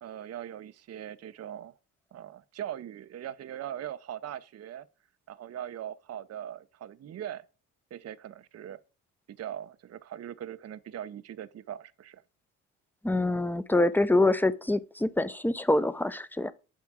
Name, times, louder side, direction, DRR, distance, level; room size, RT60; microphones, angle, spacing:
voice 1, 0.0-1.7 2.1-4.9 5.3-7.4 7.9-8.8 9.4-12.2, right 10 dB, 45° right, 0.6 m, -40 dB
voice 2, 13.0-16.5, left 2 dB, 5° left, 0.6 m, -25 dB
7.3 x 3.6 x 6.1 m
supercardioid pair, 60°, 37 cm